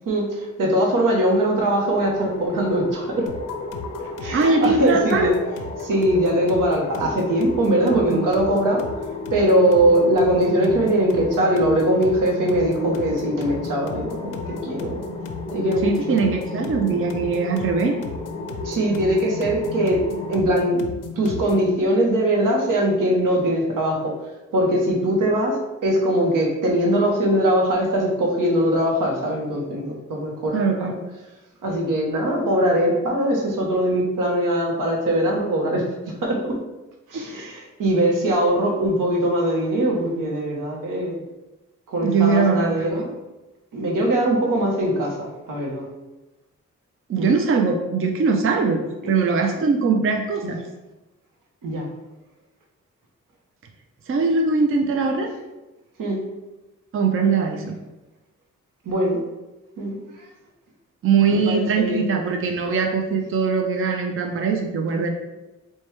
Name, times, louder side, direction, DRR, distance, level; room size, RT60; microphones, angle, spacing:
voice 1, 0.1-3.3 4.2-5.3 5.8-8.8 9.3-15.0 15.5-16.2 18.6-20.0 20.3-20.8 21.2-24.1 24.5-30.9 31.6-36.6 37.1-41.2 41.9-43.1 43.7-45.9 47.2-47.4 51.6-51.9 56.0-56.2 58.9-59.2 59.8-60.3 61.5-62.1, right 1 dB, 85° right, 0 dB, 0.8 m, -21 dB
sound 1, 1.9-20.4, left 2 dB, 20° left, 0.6 m, -35 dB
sound 2, 3.3-21.7, left 5 dB, 80° left, 0.5 m, -35 dB
voice 2, 4.3-5.3 7.8-8.3 15.8-18.0 30.5-31.0 37.1-37.3 42.0-43.1 47.1-48.8 49.1-50.6 54.1-55.3 56.9-57.8 61.0-65.1, right 4 dB, 45° right, 3 dB, 0.5 m, -21 dB
4.5 x 2.2 x 3.0 m, 1.1 s
cardioid pair, 60°, 31 cm